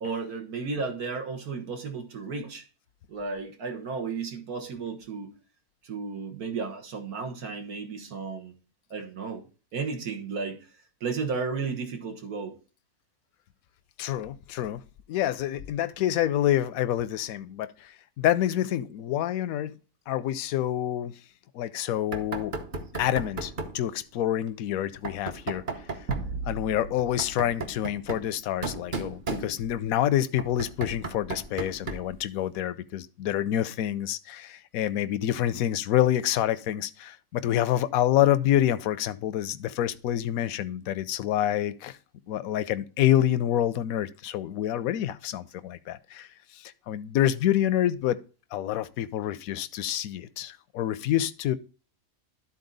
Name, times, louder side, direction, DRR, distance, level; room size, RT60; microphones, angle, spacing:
voice 1, 0.0-2.6 3.1-5.3 5.8-8.5 8.9-9.4 9.7-10.6 11.0-12.6, right 4 dB, 85° right, 1.8 m, -33 dB
voice 2, 14.0-14.8 15.1-19.7 20.1-21.1 21.5-22.5 23.0-25.6 26.4-42.0 42.3-46.3 46.5-48.2 48.5-51.6, left 12 dB, 75° left, 1.0 m, -27 dB
Knock, 22.1-23.8 25.0-26.3 27.0-29.9 30.4-32.2, right 3 dB, 40° right, 1.0 m, -36 dB
sound 1, 26.1-28.7, right 4 dB, 60° right, 1.4 m, -37 dB
12.5 x 4.2 x 3.9 m
omnidirectional pair, 1.5 m